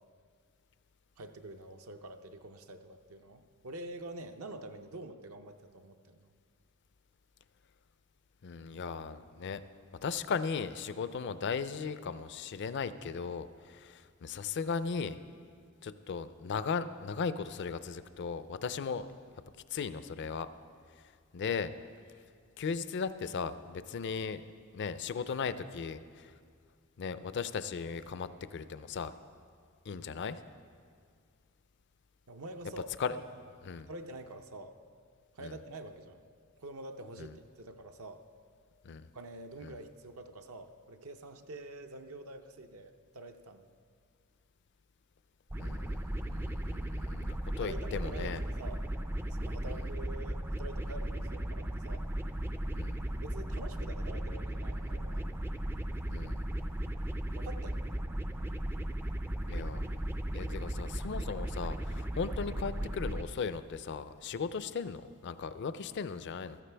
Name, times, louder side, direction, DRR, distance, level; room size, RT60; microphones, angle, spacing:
voice 1, 1.2-6.3 32.3-33.2 33.9-34.7 35.3-36.2 36.6-38.2 39.1-43.6 47.6-48.8 49.3-52.0 52.9-55.3 57.3-57.9, right 2 dB, 70° right, 6 dB, 0.6 m, -46 dB
voice 2, 8.4-9.6 10.0-15.2 15.8-19.1 19.7-20.5 21.3-21.7 22.6-24.4 24.7-26.3 27.0-29.1 29.9-30.4 33.0-33.2 33.7-33.9 35.4-35.5 37.2-37.3 38.8-39.1 39.6-39.8 45.6-48.4 52.7-53.0 56.1-56.5 59.5-59.9 60.3-66.6, left 5 dB, 55° left, 13 dB, 0.4 m, -37 dB
sound 1, 45.5-63.2, right 1 dB, 10° right, 0.3 m, -36 dB
15.0 x 13.5 x 3.4 m, 2.1 s
head